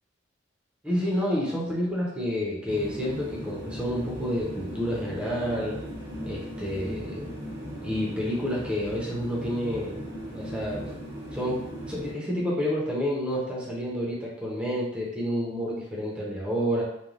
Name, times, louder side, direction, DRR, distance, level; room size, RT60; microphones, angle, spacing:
voice 1, 0.8-5.8 6.2-7.3 7.8-10.0 10.3-11.0 11.3-16.8, equal, 5° right, -6 dB, 0.6 m, -29 dB
sound 1, 2.7-12.1, equal, 60° right, 1.0 m, -38 dB
3.1 x 2.2 x 2.4 m, 0.77 s
head